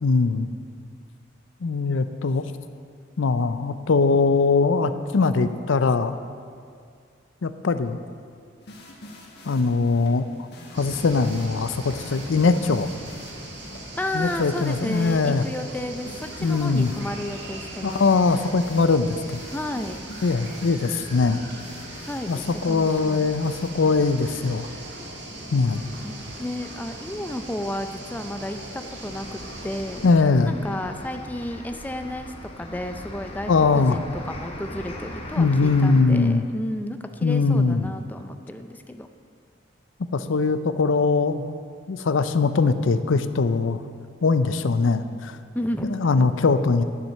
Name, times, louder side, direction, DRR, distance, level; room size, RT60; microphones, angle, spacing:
voice 1, 0.0-0.5 1.6-2.4 3.2-6.1 7.4-8.0 9.5-10.5 10.7-12.9 14.1-15.4 16.4-16.9 17.8-19.4 20.2-21.4 22.3-24.7 25.5-25.8 30.0-30.5 33.5-34.0 35.4-36.4 37.2-37.9 40.1-41.6 41.9-43.8 44.2-45.4 45.9-46.8, left 4 dB, 80° left, 11 dB, 0.5 m, -21 dB
sound 1, 8.6-23.7, left 1 dB, 55° left, 1.7 m, -46 dB
sound 2, 10.7-30.1, right 1 dB, 65° right, 1.6 m, -39 dB
voice 2, 14.0-18.1 19.5-20.0 22.0-23.3 26.0-30.0 30.5-39.1 45.5-46.3, left 1 dB, 10° left, 6 dB, 0.4 m, -32 dB
sound 3, 29.0-36.0, left 1 dB, 30° left, 1.1 m, -39 dB
11.0 x 7.4 x 6.5 m, 2.2 s
head